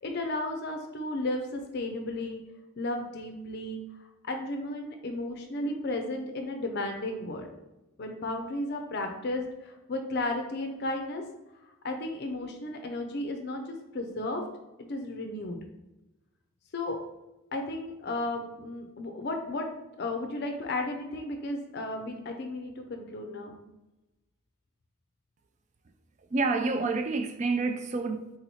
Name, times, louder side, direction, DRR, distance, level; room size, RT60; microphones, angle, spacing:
voice 1, 0.0-2.4 2.8-3.8 4.2-7.5 8.0-11.2 11.8-14.5 14.9-15.6 16.7-17.0 17.5-19.7 20.0-23.6, left 2 dB, 50° left, 0.5 m, -34 dB
voice 2, 26.3-28.3, right 3 dB, 35° right, 0.3 m, -28 dB
3.8 x 3.0 x 4.1 m
head